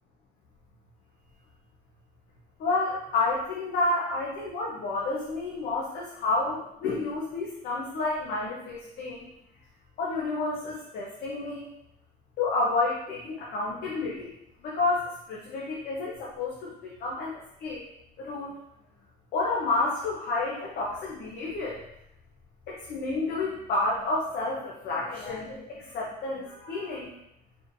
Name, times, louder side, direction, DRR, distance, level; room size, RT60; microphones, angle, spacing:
voice 1, 2.6-9.3 10.0-11.7 12.4-14.3 14.6-16.7 17.0-17.8 18.2-18.5 19.3-21.8 22.7-27.2, left 3 dB, 65° left, -5 dB, 0.9 m, -30 dB
4.6 x 3.2 x 2.7 m, 0.81 s
cardioid pair, 110°, 17 cm